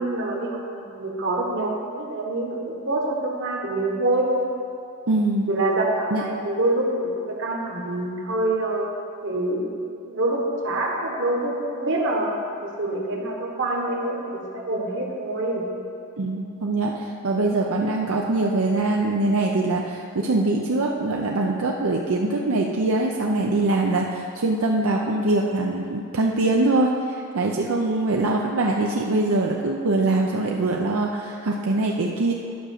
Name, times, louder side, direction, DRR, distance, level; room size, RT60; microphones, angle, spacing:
voice 1, 0.0-4.3 5.5-8.9 9.2-9.7 10.1-15.6, right 2 dB, 55° right, 0 dB, 1.4 m, -26 dB
voice 2, 5.1-5.5 6.1-6.2 16.2-32.3, right 2 dB, 75° right, 0 dB, 0.6 m, -23 dB
10.0 x 5.0 x 6.6 m, 2.5 s
head